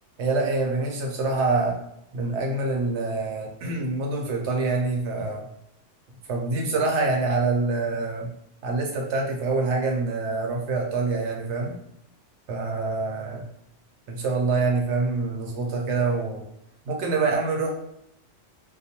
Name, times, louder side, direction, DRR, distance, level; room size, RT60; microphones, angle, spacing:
voice 1, 0.2-1.8 2.1-5.4 6.3-8.3 8.6-11.8 12.5-13.4 14.1-16.4 16.9-17.7, right 3 dB, 70° right, 1 dB, 0.9 m, -25 dB
2.3 x 2.2 x 2.8 m, 0.77 s
omnidirectional pair, 1.3 m